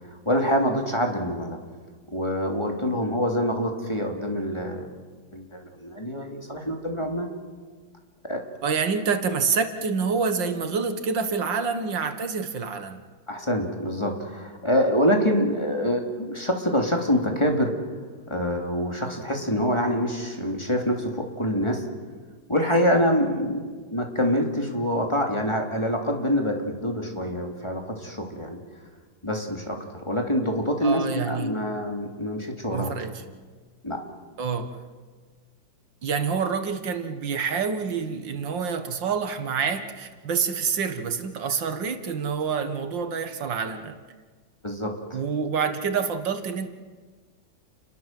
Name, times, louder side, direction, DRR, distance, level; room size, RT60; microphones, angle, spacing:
voice 1, 0.1-1.6 2.1-4.9 5.3-7.3 8.3-8.4 13.3-17.7 18.3-21.8 22.5-23.6 23.9-28.6 29.2-29.8 30.0-32.9 33.8-34.0 44.6-45.2, equal, 15° left, 2 dB, 3.1 m, -25 dB
voice 2, 8.6-13.0 30.8-31.5 32.7-33.2 34.4-34.8 36.0-44.0 45.1-46.7, right 5 dB, 75° right, 8 dB, 2.2 m, -27 dB
30.0 x 21.0 x 7.6 m, 1.5 s
omnidirectional pair, 2.0 m